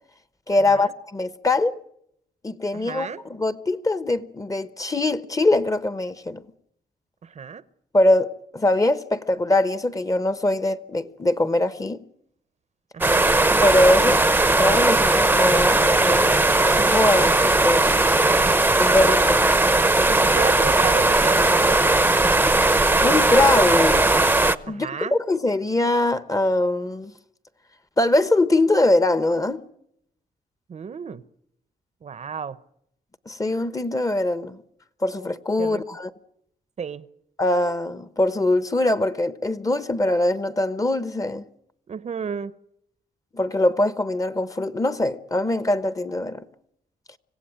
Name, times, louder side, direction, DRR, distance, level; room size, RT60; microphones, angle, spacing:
voice 1, 0.5-1.8 2.4-6.4 7.9-12.0 13.6-14.3 14.5-17.9 18.8-19.4 23.0-24.1 24.6-27.1 28.0-29.6 33.3-34.6 35.0-36.1 37.4-41.4 43.3-46.4, left 2 dB, 20° left, 1.1 m, -22 dB
voice 2, 2.7-3.2 7.2-7.6 12.9-13.3 20.1-21.8 24.7-25.2 30.7-31.2 32.0-32.6 35.6-35.8 36.8-37.1 41.9-42.5, right 6 dB, 45° right, 0.8 m, -32 dB
sound 1, 13.0-24.6, right 2 dB, 10° right, 0.8 m, -18 dB
26.0 x 16.5 x 8.9 m
cardioid pair, 115°, 16 cm